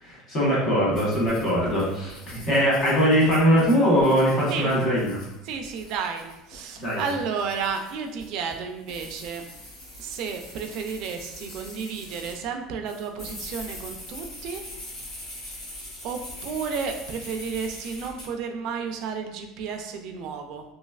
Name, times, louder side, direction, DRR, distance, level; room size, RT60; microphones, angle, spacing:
voice 1, 0.0-5.2 6.8-7.0, equal, 35° left, -6 dB, 1.2 m, -21 dB
sound 1, 0.9-12.4 12.8-18.3, left 1 dB, 55° left, 1.5 m, -42 dB
voice 2, 5.4-9.4 10.0-14.6 16.0-20.6, right 6 dB, 45° right, 5 dB, 0.3 m, -32 dB
3.1 x 2.8 x 2.4 m, 0.95 s
cardioid pair, 175°, 0 cm